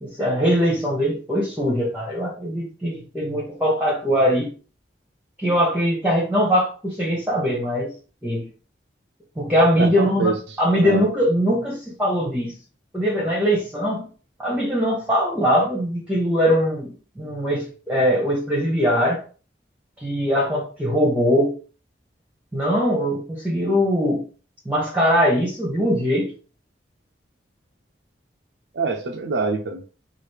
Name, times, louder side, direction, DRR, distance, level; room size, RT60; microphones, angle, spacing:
voice 1, 0.0-4.5 5.4-7.9 8.2-8.5 9.4-10.3 10.6-12.5 12.9-14.0 14.4-19.2 20.0-21.5 22.5-24.2 24.6-26.3, equal, 10° right, 0.8 m, -21 dB
voice 2, 9.8-11.0 28.7-29.8, right 4 dB, 75° right, 0.5 m, -26 dB
4.7 x 2.4 x 3.2 m
head